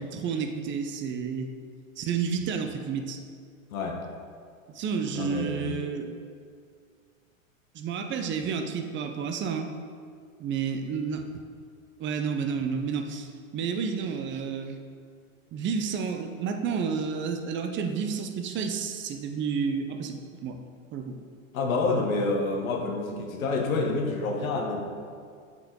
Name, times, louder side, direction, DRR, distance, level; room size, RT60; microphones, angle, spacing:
voice 1, 0.0-1.5 2.0-3.2 4.7-6.1 7.7-9.7 10.4-11.3 12.0-14.8 15.5-20.6 20.9-21.2, right 6 dB, 30° right, 6 dB, 0.7 m, -30 dB
voice 2, 5.2-5.7 21.5-24.8, left 3 dB, 80° left, 1 dB, 1.3 m, -28 dB
7.9 x 6.0 x 3.7 m, 2.1 s
hypercardioid pair, 110°, 41 cm